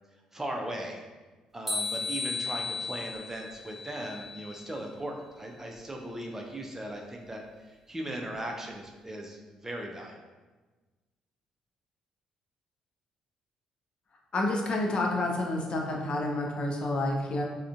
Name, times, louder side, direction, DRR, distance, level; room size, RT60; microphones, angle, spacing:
voice 1, 0.3-1.0 1.5-10.2, right 1 dB, 15° right, 1 dB, 0.5 m, -38 dB
sound 1, 1.7-4.8, left 3 dB, ahead, 0.9 m, -35 dB
voice 2, 14.3-17.4, left 2 dB, 40° left, 0 dB, 0.5 m, -29 dB
3.6 x 2.2 x 2.4 m, 1.3 s
figure-of-eight pair, 45°, 3 cm